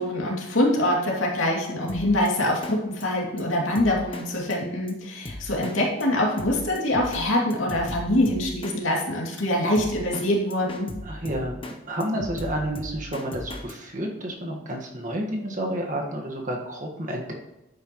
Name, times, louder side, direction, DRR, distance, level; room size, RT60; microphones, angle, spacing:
voice 1, 0.0-10.9, left 1 dB, 85° left, -2 dB, 2.6 m, -24 dB
Drum kit, 1.9-2.3 2.6-2.7 3.0-3.1 3.4-3.5 3.7-4.2 4.5-4.6 4.9-5.0 5.2-5.7 6.0-6.1 6.4-7.2 7.5-8.7 9.0-9.1 9.4-9.5 9.7-10.2 10.5-11.7 12.0-13.7, left 1 dB, 25° left, 0.9 m, -37 dB
voice 2, 11.0-17.3, right 1 dB, 40° right, 1 dB, 1.6 m, -30 dB
11.0 x 9.2 x 3.1 m, 0.96 s
head